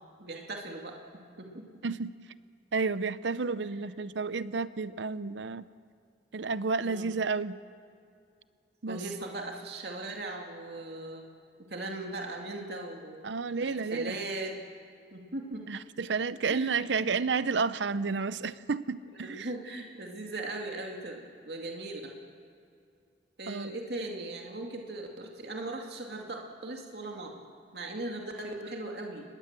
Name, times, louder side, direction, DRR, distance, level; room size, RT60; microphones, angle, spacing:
voice 1, 0.2-1.0 1.4-1.6 3.6-3.8 6.8-7.1 8.9-11.2 11.7-13.2 13.6-14.5 15.1-15.7 16.5-16.9 19.2-22.1 23.4-27.4 27.7-29.2, right 2 dB, 65° right, 1 dB, 2.4 m, -39 dB
voice 2, 2.7-5.7 6.3-7.6 8.8-9.0 13.2-14.2 15.7-19.5 23.5-23.7, right 4 dB, 85° right, 15 dB, 0.7 m, -31 dB
26.0 x 20.5 x 7.5 m, 2.4 s
head